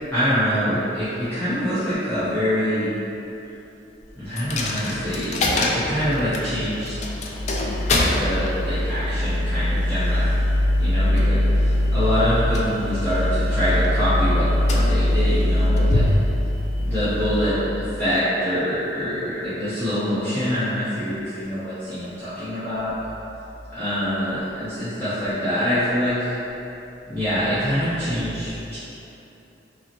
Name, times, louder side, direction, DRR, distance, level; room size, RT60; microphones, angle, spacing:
voice 1, 0.1-2.9 4.1-6.9 7.9-10.3 10.8-11.6 11.9-16.0 16.8-22.9 23.7-26.3 27.1-28.8, equal, 10° left, -16 dB, 0.8 m, -25 dB
Coin (dropping), 4.4-18.1, left 1 dB, 40° left, 0.3 m, -22 dB
5.3 x 2.1 x 2.9 m, 3.0 s
head